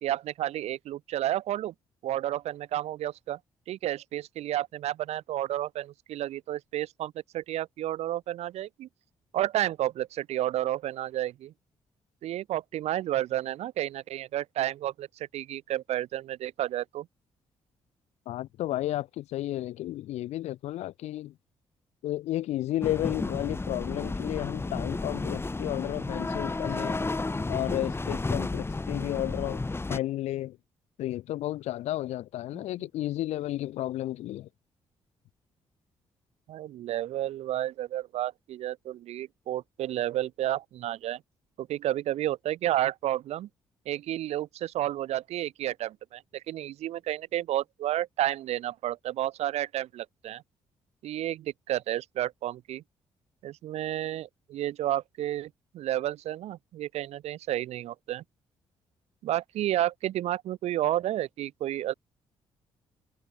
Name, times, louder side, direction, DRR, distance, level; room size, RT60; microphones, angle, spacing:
voice 1, 0.0-1.7 2.0-3.4 3.7-8.9 9.3-11.5 12.2-17.1 36.5-41.2 41.6-43.5 43.9-50.4 51.0-52.8 53.4-58.2 59.2-61.9, right 13 dB, 75° right, 0.7 m, -31 dB
voice 2, 18.3-21.3 22.0-27.0 27.5-29.6 29.9-30.6 31.0-34.5, left 14 dB, 80° left, 1.0 m, -32 dB
sound 1, 22.8-30.0, left 3 dB, 20° left, 1.3 m, -32 dB
supercardioid pair, 55°, 11 cm